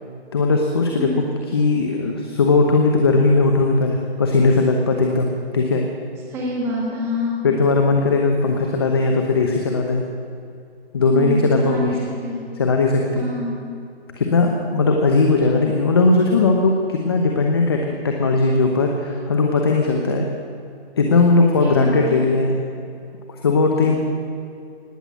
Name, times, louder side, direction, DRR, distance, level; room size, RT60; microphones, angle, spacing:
voice 1, 0.3-1.1 1.5-5.8 7.4-10.0 10.9-11.9 12.6-13.2 14.2-20.2 21.0-22.6 23.4-24.0, left 3 dB, 25° left, 2 dB, 0.9 m, -18 dB
voice 2, 6.3-7.4 11.1-12.5 13.1-13.6 21.6-22.3 23.8-24.0, left 1 dB, 10° right, -2 dB, 1.7 m, -27 dB
18.5 x 8.0 x 9.2 m, 2.5 s
hypercardioid pair, 170°, 32 cm